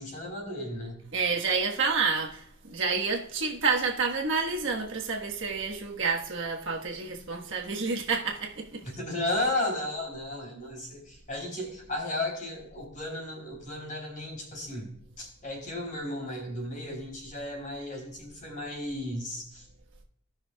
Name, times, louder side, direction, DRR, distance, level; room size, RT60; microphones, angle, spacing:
voice 1, 0.0-1.0 8.8-19.7, left 1 dB, 35° left, 3.9 m, -34 dB
voice 2, 1.1-8.8, right 4 dB, 55° right, 1.4 m, -29 dB
17.5 x 6.1 x 2.3 m
head